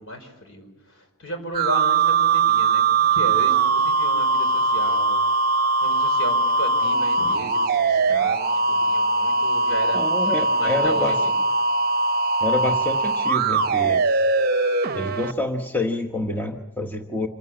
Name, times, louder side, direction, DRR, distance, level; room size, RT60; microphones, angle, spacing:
voice 1, 0.0-5.2 5.8-11.3, equal, 60° left, 4 dB, 4.9 m, -34 dB
sound 1, 1.5-15.3, right 3 dB, 45° right, 0.8 m, -21 dB
voice 2, 9.9-11.2 12.4-14.2 14.9-17.3, left 2 dB, 10° left, 2 dB, 1.0 m, -27 dB
26.5 x 15.5 x 9.8 m, 1.0 s
head